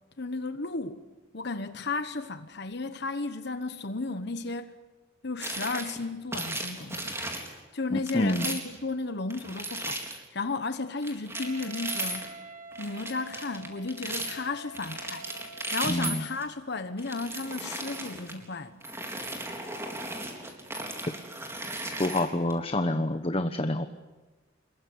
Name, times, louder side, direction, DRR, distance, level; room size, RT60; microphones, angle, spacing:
voice 1, 0.2-1.0 1.3-4.7 5.2-12.3 12.8-15.3 15.7-18.8, left 3 dB, 55° left, 1.2 m, -34 dB
sound 1, 5.4-6.0 6.3-7.5 8.1-8.8 9.3-10.2 11.0-12.3 12.7-14.4 14.7-16.4 17.0-18.3 18.8-22.5, right 2 dB, 15° right, 4.0 m, -36 dB
voice 2, 7.9-8.5 15.9-16.2 22.0-23.9, left 1 dB, 30° left, 1.1 m, -27 dB
Wind instrument woodwind instrument, 11.3-16.3, right 3 dB, 35° right, 7.0 m, -47 dB
27.5 x 22.0 x 9.6 m
head